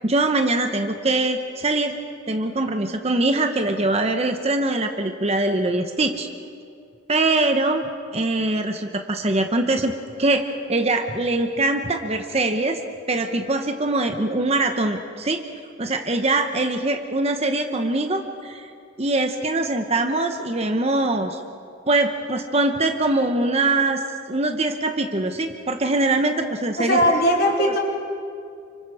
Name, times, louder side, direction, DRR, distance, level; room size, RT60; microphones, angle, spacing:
voice 1, 0.0-1.9 2.3-6.3 7.1-9.9 10.2-12.8 13.1-15.4 15.8-18.7 19.0-21.4 21.9-24.0 24.3-27.0 27.6-27.7, right 2 dB, 30° right, 5 dB, 0.9 m, -23 dB
voice 2, 26.8-27.8, equal, 45° left, -1 dB, 3.7 m, -19 dB
28.5 x 25.5 x 4.9 m, 2.4 s
head